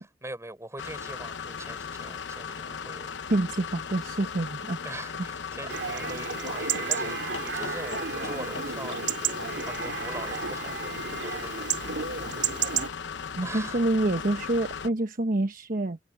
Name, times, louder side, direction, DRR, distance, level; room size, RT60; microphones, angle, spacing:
voice 1, 0.0-3.1 4.8-10.8 11.2-11.7 13.4-13.9, right 2 dB, 15° right, 5.5 m, -42 dB
sound 1, 0.8-14.9, left 6 dB, 85° left, 0.8 m, -37 dB
voice 2, 3.3-4.8 13.4-16.0, right 2 dB, 50° right, 1.1 m, -27 dB
Chatter / Livestock farm animals working animals / Chirp tweet, 5.7-12.9, right 6 dB, 75° right, 2.8 m, -32 dB
head